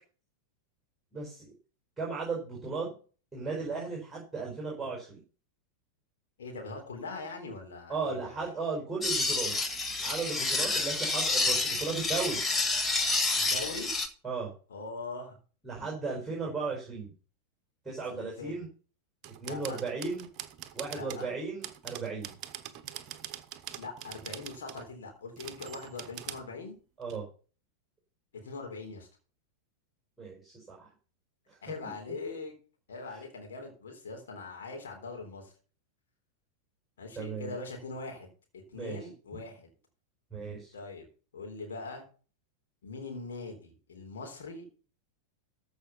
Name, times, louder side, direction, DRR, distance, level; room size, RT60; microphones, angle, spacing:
voice 1, 1.1-1.5 2.0-2.9 3.3-5.2 7.9-9.5 10.0-12.4 14.2-14.5 15.6-17.1 17.8-18.7 19.4-20.3 20.7-22.3 27.0-27.2 30.2-30.9 31.5-31.6 31.8-31.9 37.2-37.5 38.7-39.0 40.3-40.7, right 4 dB, 5° right, -3 dB, 4.9 m, -35 dB
voice 2, 6.4-8.4 10.7-10.8 13.3-13.9 14.7-15.4 18.1-18.5 19.4-19.8 20.9-21.3 23.8-26.7 28.4-29.1 31.6-32.5 32.9-35.5 37.0-38.3 38.7-39.7 40.7-41.1 41.3-42.1 42.8-44.7, left 3 dB, 65° left, 1 dB, 3.8 m, -41 dB
sound 1, 9.0-14.1, left 3 dB, 15° left, 1.4 m, -29 dB
sound 2, 19.2-21.3 21.6-24.9 25.4-26.4 27.1-27.2, right 10 dB, 35° right, 1.2 m, -43 dB
14.0 x 5.6 x 5.7 m, 0.38 s
figure-of-eight pair, 90°, 0 cm